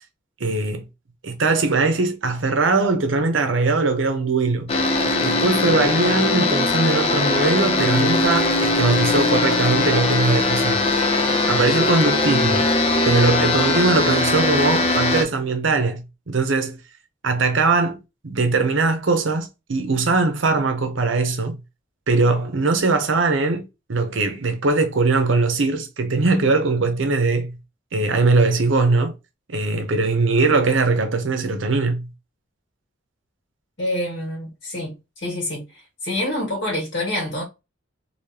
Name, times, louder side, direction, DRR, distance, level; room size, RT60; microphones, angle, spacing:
voice 1, 0.4-0.9 1.2-4.7 5.2-10.8 11.5-12.7 13.1-16.8 17.2-21.6 22.1-27.6 27.9-29.1 29.5-32.1, right 3 dB, 75° right, 0.7 m, -21 dB
sound 1, 4.7-15.2, left 2 dB, 30° left, 0.5 m, -20 dB
voice 2, 33.8-35.7 36.0-37.4, left 1 dB, 70° left, 1.6 m, -26 dB
3.3 x 2.8 x 2.7 m
head